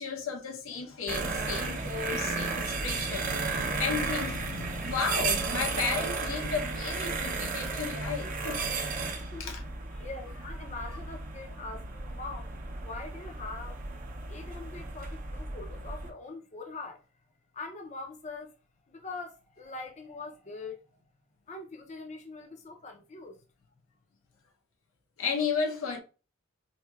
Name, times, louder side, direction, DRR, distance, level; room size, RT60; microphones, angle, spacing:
voice 1, 0.0-9.0 9.4-9.6 25.2-26.0, left 5 dB, 90° left, 0.7 m, -34 dB
sound 1, 1.1-16.1, right 3 dB, 40° right, 0.5 m, -34 dB
voice 2, 9.1-9.5 9.9-12.5 12.8-13.8 14.3-17.0 17.5-18.5 18.9-20.8 21.5-23.4, left 3 dB, 35° left, 0.4 m, -43 dB
4.4 x 2.7 x 2.2 m
head